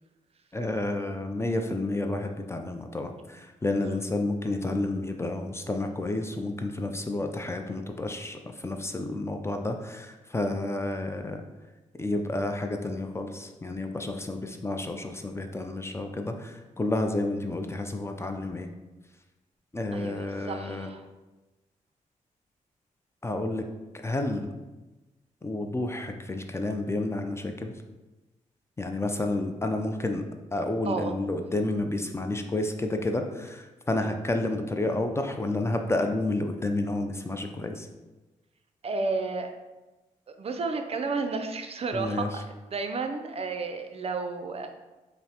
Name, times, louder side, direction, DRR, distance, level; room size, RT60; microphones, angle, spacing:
voice 1, 0.5-3.1 3.6-11.4 12.0-16.5 16.8-18.7 19.7-20.9 23.2-23.6 24.0-24.4 25.4-27.7 28.8-30.2 30.5-33.6 33.9-37.9 41.9-42.3, left 2 dB, 20° left, 5 dB, 0.4 m, -30 dB
voice 2, 19.9-21.0 30.9-31.2 34.0-34.2 38.8-39.5 40.3-44.7, right 4 dB, 45° right, 6 dB, 0.4 m, -32 dB
5.4 x 2.0 x 2.8 m, 1.1 s
cardioid pair, 60°, 14 cm